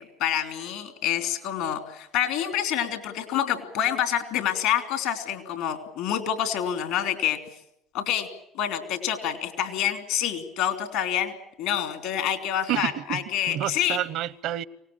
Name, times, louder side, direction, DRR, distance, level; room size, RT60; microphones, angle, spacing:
voice 1, 0.0-7.4 7.9-8.3 8.5-14.0, left 10 dB, 70° left, 3.1 m, -27 dB
voice 2, 12.7-13.2 13.5-14.6, right 12 dB, 65° right, 0.9 m, -29 dB
24.5 x 18.5 x 8.7 m
hypercardioid pair, 65°, 0 cm